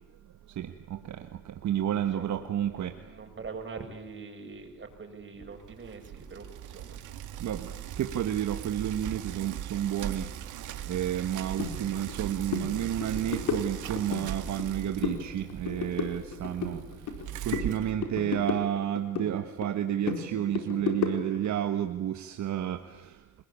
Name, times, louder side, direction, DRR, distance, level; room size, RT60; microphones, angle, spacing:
voice 1, 0.5-3.0 7.4-10.3 10.8-16.8 17.4-23.2, right 10 dB, 70° right, 8 dB, 1.6 m, -31 dB
voice 2, 2.1-2.4 2.7-7.0, right 4 dB, 40° right, 4 dB, 6.8 m, -43 dB
Bicycle, 5.5-18.6, right 10 dB, 85° right, 2.4 m, -40 dB
sound 1, 11.6-11.7 12.1-12.2 12.5-12.7 13.0-14.2 14.6-15.2 15.5-17.2 17.5-19.3 19.6-21.5, left 7 dB, 80° left, 4.5 m, -33 dB
27.5 x 20.5 x 8.7 m, 1.1 s
cardioid pair, 90°, 30 cm